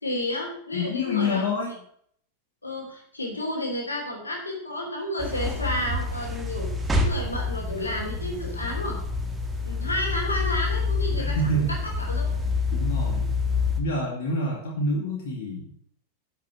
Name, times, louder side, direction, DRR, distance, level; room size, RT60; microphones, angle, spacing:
voice 1, 0.0-1.4 2.6-9.0 9.6-12.4, left 1 dB, 80° left, 1 dB, 3.3 m, -31 dB
voice 2, 0.7-1.7 11.1-11.7 12.7-13.3 13.8-15.7, left 1 dB, 55° left, -1 dB, 2.5 m, -27 dB
sound 1, 5.2-13.8, left 3 dB, 10° right, 1.7 m, -27 dB
11.5 x 6.5 x 6.1 m, 0.63 s
figure-of-eight pair, 90°, 0 cm